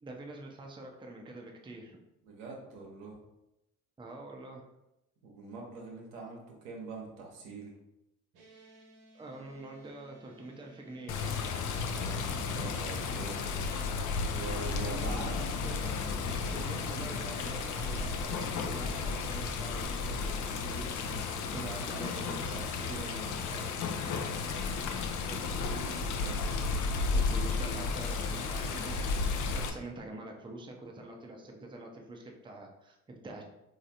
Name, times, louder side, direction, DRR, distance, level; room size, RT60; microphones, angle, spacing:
voice 1, 0.0-2.0 4.0-4.7 9.1-11.3 14.8-23.9 25.2-25.4 26.2-26.4 26.7-33.4, right 2 dB, 10° right, 2 dB, 0.5 m, -46 dB
voice 2, 2.2-3.2 5.2-7.7 11.7-13.4 14.3-15.3, right 3 dB, 85° right, -1 dB, 0.8 m, -43 dB
sound 1, 8.3-24.6, right 1 dB, 60° right, 1.1 m, -61 dB
Water, 11.1-29.7, left 4 dB, 50° left, 0.5 m, -33 dB
3.2 x 2.6 x 2.7 m, 0.90 s
hypercardioid pair, 55°, 41 cm